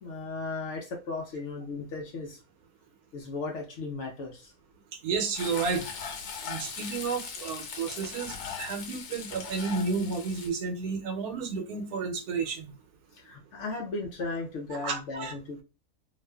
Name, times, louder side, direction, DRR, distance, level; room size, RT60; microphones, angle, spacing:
voice 1, 0.0-2.4 3.1-4.5 13.1-15.6, left 3 dB, 70° left, 0.7 m, -36 dB
voice 2, 5.0-5.9 6.5-12.7 14.7-15.3, right 5 dB, 85° right, 1.1 m, -32 dB
Frying (food), 5.3-10.5, left 6 dB, 90° left, 1.1 m, -39 dB
2.5 x 2.4 x 2.2 m
omnidirectional pair, 1.6 m